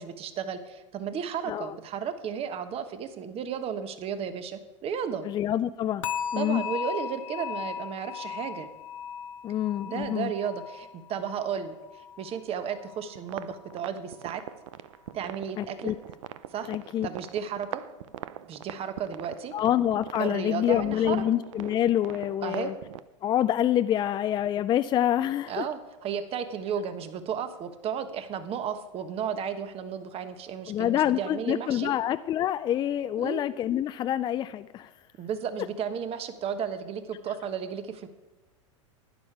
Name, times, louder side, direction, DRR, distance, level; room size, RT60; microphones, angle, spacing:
voice 1, 0.0-5.3 6.4-8.7 9.8-14.4 15.1-15.9 16.5-16.7 17.0-17.8 18.5-19.5 20.2-21.2 22.4-22.7 25.5-31.9 33.2-33.4 35.2-38.1, right 7 dB, 35° right, 10 dB, 1.2 m, -33 dB
voice 2, 5.2-6.1 6.3-6.6 9.4-10.3 15.6-16.0 16.7-17.1 19.5-22.7 23.2-25.6 30.7-34.9, left 11 dB, 25° left, 12 dB, 0.4 m, -26 dB
sound 1, 6.0-13.1 13.4-13.8 14.3-14.4, left 8 dB, 85° left, 0.7 m, -38 dB
sound 2, 13.2-23.0, right 12 dB, 75° right, 0.5 m, -43 dB
11.5 x 9.8 x 4.7 m, 1.1 s
hypercardioid pair, 100°, 16 cm